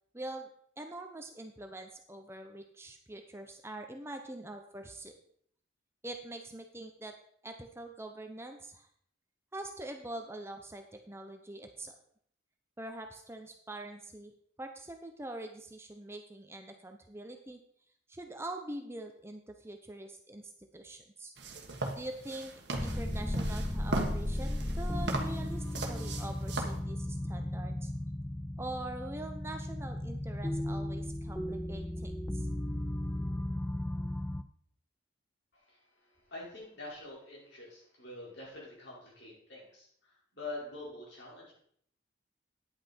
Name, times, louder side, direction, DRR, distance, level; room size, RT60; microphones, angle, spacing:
voice 1, 0.1-0.5 0.8-5.1 6.0-7.1 7.4-8.9 9.5-11.9 12.8-14.3 14.6-17.6 18.1-21.3 21.9-22.5 22.8-27.9 28.6-32.5, right 1 dB, 15° right, 5 dB, 0.7 m, -44 dB
sound 1, 21.4-26.8, right 2 dB, 60° right, 1.4 m, -38 dB
sound 2, 22.7-34.4, left 1 dB, 10° left, 0.3 m, -35 dB
voice 2, 35.5-41.5, left 2 dB, 65° left, -5 dB, 4.9 m, -46 dB
9.9 x 8.6 x 4.4 m, 0.64 s
head